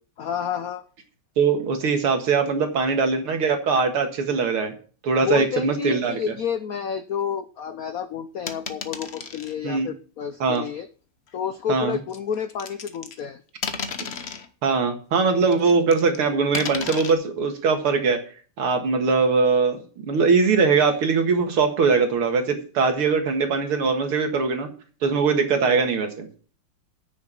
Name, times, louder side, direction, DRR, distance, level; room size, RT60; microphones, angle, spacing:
voice 1, 0.2-0.8 5.2-10.9 11.3-13.4, left 8 dB, 80° left, 11 dB, 0.7 m, -29 dB
voice 2, 1.4-4.7 5.0-6.2 9.6-9.9 10.4-10.6 11.7-12.0 14.6-18.2 18.6-24.7 25.0-26.3, right 4 dB, 80° right, 5 dB, 2.6 m, -21 dB
sound 1, 8.5-9.5 10.5-10.7 12.1-13.2 13.6-14.5 15.5-16.2 16.5-17.1, left 5 dB, 50° left, 0.8 m, -33 dB
9.6 x 6.9 x 7.3 m, 0.40 s
omnidirectional pair, 2.4 m